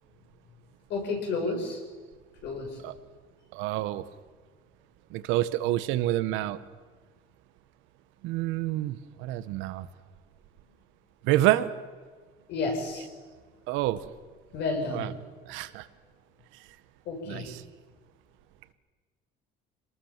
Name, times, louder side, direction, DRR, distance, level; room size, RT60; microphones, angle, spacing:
voice 1, 0.9-1.8 2.4-2.8 12.5-13.1 14.5-15.1 17.1-17.5, left 3 dB, 65° left, 2 dB, 7.2 m, -31 dB
voice 2, 3.5-4.0 5.1-6.6 8.2-9.9 11.2-11.7 13.7-14.0 14.9-15.1 15.5-15.8 17.3-17.6, right 15 dB, 85° right, 13 dB, 1.3 m, -28 dB
26.5 x 19.5 x 7.4 m, 1.5 s
cardioid pair, 160°, 20 cm